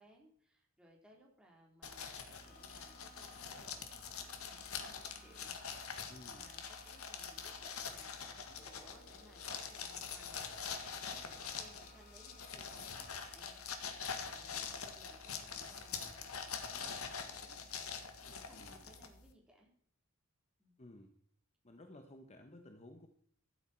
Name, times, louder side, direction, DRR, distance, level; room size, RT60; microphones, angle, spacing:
voice 1, 0.0-5.6 6.3-13.6 14.3-17.7 18.2-19.7 20.6-20.7, right 1 dB, 5° right, -2 dB, 4.0 m, -63 dB
sound 1, 1.8-19.3, left 6 dB, 80° left, 1.8 m, -45 dB
sound 2, 2.3-13.4, left 2 dB, 50° left, 3.9 m, -62 dB
voice 2, 6.1-6.5 11.0-11.1 18.5-18.8 20.8-21.1 21.6-23.1, left 1 dB, 30° left, 6 dB, 1.1 m, -55 dB
15.0 x 12.5 x 4.6 m, 0.63 s
head